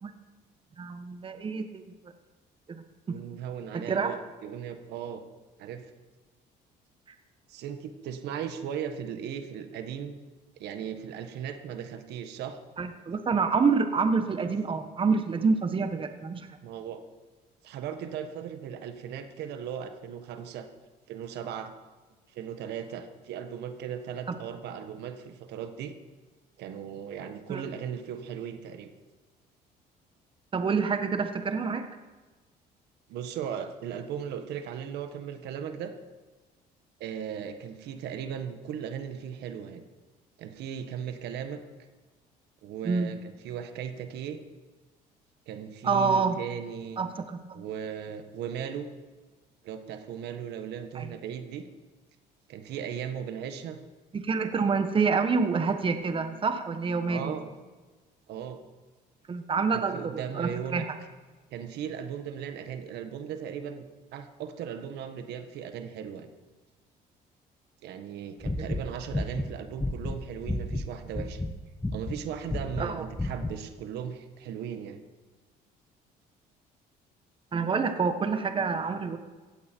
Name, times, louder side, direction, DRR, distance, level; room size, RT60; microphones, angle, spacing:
voice 1, 0.8-1.8 2.7-3.2 3.7-4.1 12.8-16.5 27.5-27.6 30.5-31.9 42.8-43.1 45.8-46.4 47.0-47.6 50.9-51.1 54.1-57.3 59.3-60.9 72.8-73.0 77.5-79.2, right 5 dB, 30° right, 8 dB, 1.4 m, -27 dB
voice 2, 3.1-5.2 5.6-5.9 7.5-10.2 10.6-12.6 16.6-17.0 17.6-20.7 21.1-21.7 22.3-25.9 26.6-28.9 33.1-35.9 37.0-39.8 40.4-41.6 42.6-44.4 45.5-47.0 47.5-48.9 49.6-51.6 52.5-53.8 57.1-57.5 58.3-58.6 59.7-60.9 61.5-63.8 64.1-66.3 67.8-71.4 71.9-75.0, right 8 dB, 80° right, 8 dB, 1.5 m, -37 dB
sound 1, 68.4-70.9 71.1-71.5 71.8-72.2 72.5-72.9 73.2-73.5, left 2 dB, 10° left, 1.1 m, -31 dB
16.5 x 16.0 x 4.6 m, 1.3 s
cardioid pair, 110°, 17 cm